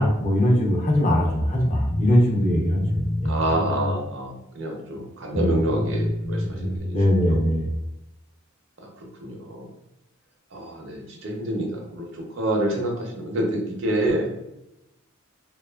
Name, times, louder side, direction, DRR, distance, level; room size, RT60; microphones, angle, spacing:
voice 1, 0.0-3.4 5.3-5.5 6.9-7.7, equal, 35° left, -1 dB, 0.5 m, -21 dB
sound 1, 1.6-4.3 4.9-5.0 5.5-6.8, left 1 dB, 85° left, 0.7 m, -28 dB
voice 2, 3.2-7.3 8.8-9.7 10.5-14.3, right 1 dB, 60° right, 0 dB, 0.6 m, -28 dB
2.7 x 2.3 x 2.2 m, 0.89 s
head